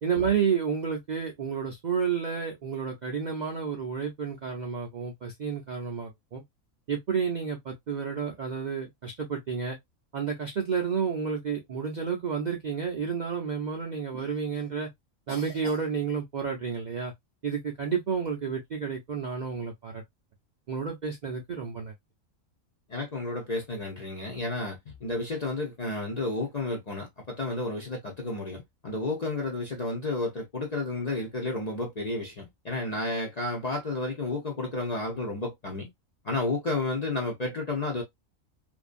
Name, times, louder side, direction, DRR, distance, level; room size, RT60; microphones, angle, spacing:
voice 1, 0.0-6.4 6.9-9.8 10.1-14.9 15.3-17.1 17.4-20.0 20.7-21.9, right 6 dB, 55° right, 0.5 m, -30 dB
voice 2, 22.9-35.9 36.2-38.0, left 2 dB, 45° left, 0.5 m, -31 dB
2.6 x 2.2 x 2.4 m
omnidirectional pair, 1.4 m